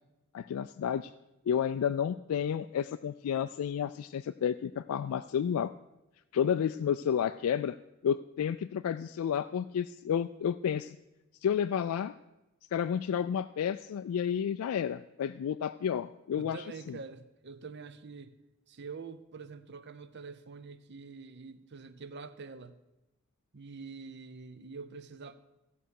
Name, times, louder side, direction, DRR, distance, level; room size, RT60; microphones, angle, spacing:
voice 1, 0.3-1.1 1.5-5.7 6.3-7.8 8.0-11.0 11.4-12.1 12.7-17.0, left 8 dB, 80° left, 11 dB, 0.3 m, -31 dB
voice 2, 16.4-18.3 18.7-22.7 23.5-25.4, right 4 dB, 50° right, 12 dB, 0.7 m, -45 dB
16.0 x 5.6 x 6.4 m, 0.98 s
head